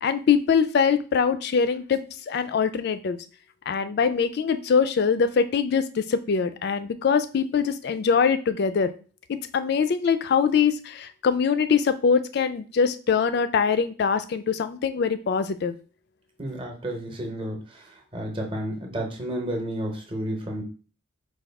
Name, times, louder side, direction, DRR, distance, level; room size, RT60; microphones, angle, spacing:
voice 1, 0.0-3.2 3.7-8.9 9.3-15.7, left 6 dB, 55° left, 11 dB, 0.3 m, -23 dB
voice 2, 16.4-17.8 18.1-20.6, right 1 dB, 25° right, 2 dB, 0.8 m, -31 dB
4.7 x 2.3 x 3.4 m, 0.37 s
head